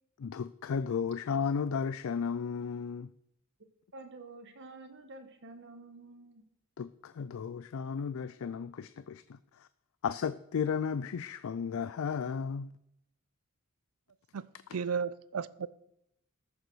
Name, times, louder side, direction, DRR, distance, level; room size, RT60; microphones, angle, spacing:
voice 1, 0.2-3.1 6.8-9.4 10.0-12.7, left 6 dB, 65° left, 0.4 m, -34 dB
voice 2, 3.9-6.4, right 2 dB, 55° right, 1.3 m, -49 dB
voice 3, 14.3-15.7, right 6 dB, 90° right, 0.5 m, -34 dB
14.0 x 6.7 x 6.2 m
head